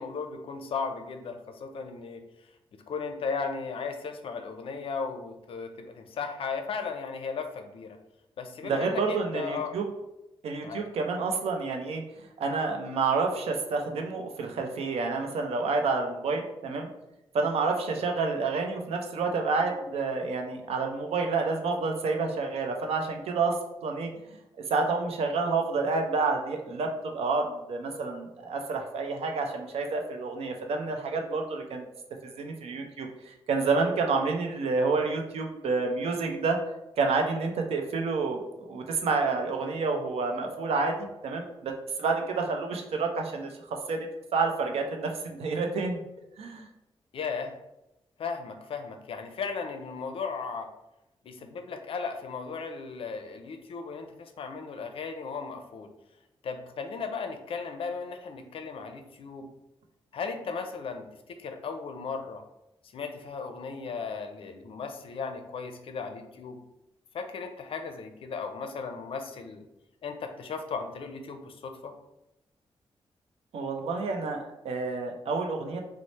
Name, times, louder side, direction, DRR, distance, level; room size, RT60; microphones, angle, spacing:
voice 1, 0.0-2.2 2.7-8.0 8.4-9.7 10.6-10.8 47.1-47.5 48.2-50.7 51.2-55.9 56.4-59.5 60.1-62.4 62.9-66.6 67.1-69.7 70.0-71.9, left 5 dB, 65° left, 6 dB, 0.4 m, -36 dB
voice 2, 8.6-9.9 10.4-12.0 12.4-16.9 17.3-23.6 23.8-24.1 24.7-31.8 32.2-36.6 37.0-41.7 42.0-46.0 46.4-46.7 73.5-75.8, right 4 dB, 85° right, 3 dB, 0.5 m, -29 dB
3.1 x 2.0 x 4.0 m, 0.91 s
wide cardioid pair, 125°, 10 cm